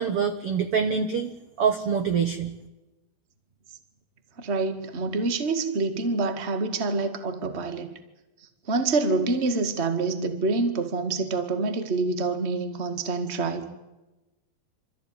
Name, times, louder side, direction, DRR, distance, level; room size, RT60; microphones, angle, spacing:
voice 1, 0.0-1.3 1.6-2.5, right 6 dB, 70° right, 8 dB, 1.3 m, -25 dB
voice 2, 4.4-7.9 8.7-13.6, right 3 dB, 30° right, 9 dB, 1.1 m, -26 dB
27.0 x 14.0 x 9.8 m, 1.1 s
omnidirectional pair, 4.5 m